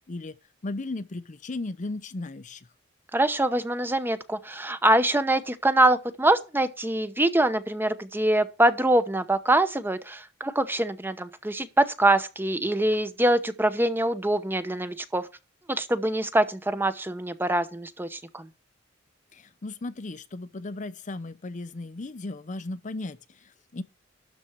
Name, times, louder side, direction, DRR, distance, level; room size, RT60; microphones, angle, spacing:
voice 1, 0.6-2.7 19.3-23.8, left 2 dB, 40° left, 0.6 m, -36 dB
voice 2, 3.1-15.3 15.7-18.5, right 1 dB, 10° right, 0.8 m, -24 dB
12.5 x 4.3 x 7.9 m
head